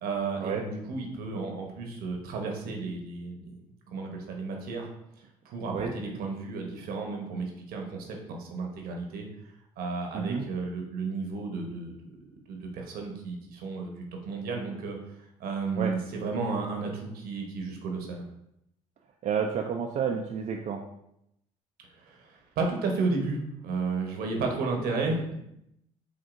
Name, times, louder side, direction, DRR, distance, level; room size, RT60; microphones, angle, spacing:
voice 1, 0.0-3.5 3.9-4.9 5.4-9.3 9.8-12.1 12.5-13.9 14.2-15.0 15.4-18.2 22.0-25.4, right 4 dB, 70° right, 2 dB, 1.0 m, -33 dB
voice 2, 19.2-20.8, right 7 dB, 45° right, 2 dB, 0.4 m, -30 dB
5.1 x 2.7 x 2.5 m, 0.79 s
supercardioid pair, 65°, 16 cm